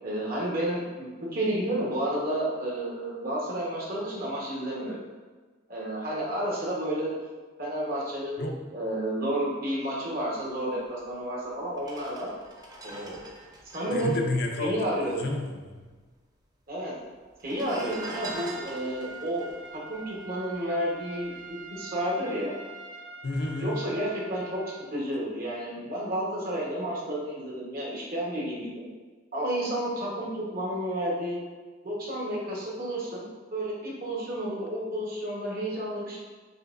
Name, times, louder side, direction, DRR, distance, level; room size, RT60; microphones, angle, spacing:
voice 1, 0.0-5.0 5.7-7.2 7.6-12.3 12.8-13.2 13.7-14.2 14.6-15.2 16.7-16.9 17.4-19.5 19.9-22.5 23.5-24.6 24.9-28.9 29.3-31.4 31.8-36.2, right 1 dB, 50° right, -5 dB, 1.1 m, -31 dB
sound 1, 11.0-11.1 11.7-15.4 15.6-15.7 15.9-16.6 17.3-20.8 21.2-21.5, right 2 dB, 20° right, 0.5 m, -44 dB
voice 2, 13.9-15.9 23.2-23.8, left 2 dB, 60° left, 2 dB, 0.5 m, -31 dB
Trumpet, 17.7-25.0, right 4 dB, 80° right, 0.5 m, -45 dB
5.5 x 2.9 x 2.5 m, 1.4 s
head